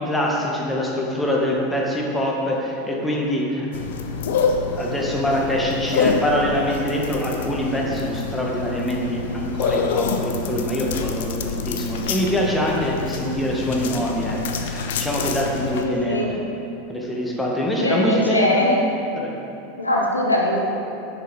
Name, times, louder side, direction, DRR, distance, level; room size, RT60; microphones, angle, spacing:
voice 1, 0.0-3.7 4.7-16.2 16.9-18.9 19.2-19.3, equal, 5° left, -2 dB, 1.7 m, -24 dB
sound 1, 3.7-15.8, left 5 dB, 60° left, 0.7 m, -27 dB
voice 2, 15.8-16.3 17.8-18.8 19.8-20.6, left 1 dB, 85° left, -1 dB, 1.3 m, -21 dB
10.0 x 8.0 x 4.3 m, 3.0 s
figure-of-eight pair, 85°, 0 cm